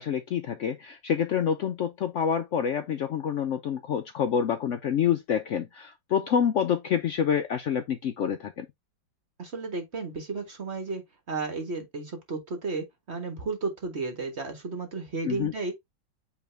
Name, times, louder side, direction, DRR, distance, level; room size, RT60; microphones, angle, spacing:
voice 1, 0.0-8.7 15.3-15.5, left 8 dB, 90° left, 0.6 m, -27 dB
voice 2, 9.4-11.0 11.3-15.7, right 3 dB, 40° right, 1.8 m, -33 dB
8.5 x 3.5 x 3.3 m
omnidirectional pair, 2.0 m